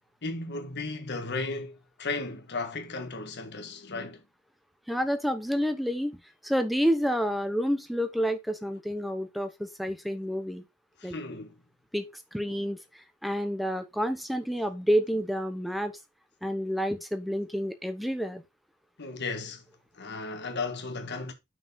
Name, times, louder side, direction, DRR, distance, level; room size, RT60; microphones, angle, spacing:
voice 1, 0.2-4.2 11.0-11.5 19.0-19.6 19.9-21.3, left 3 dB, 50° left, 1.4 m, -35 dB
voice 2, 4.9-10.7 11.0-11.1 11.9-16.0 16.4-18.4, equal, ahead, 0.8 m, -29 dB
6.0 x 4.6 x 5.3 m
head